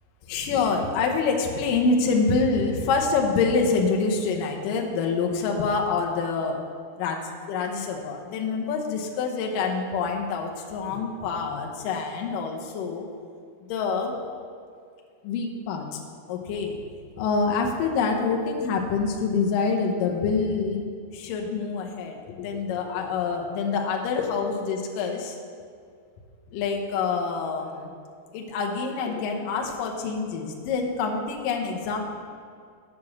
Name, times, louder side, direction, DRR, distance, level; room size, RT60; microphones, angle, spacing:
voice 1, 0.3-6.6 7.0-7.2 7.5-13.1 13.7-14.2 15.2-16.0 16.3-20.9 21.1-25.4 26.5-27.9 28.3-32.0, left 4 dB, 75° left, 1 dB, 2.1 m, -26 dB
7.3 x 6.8 x 6.2 m, 2.2 s
omnidirectional pair, 4.7 m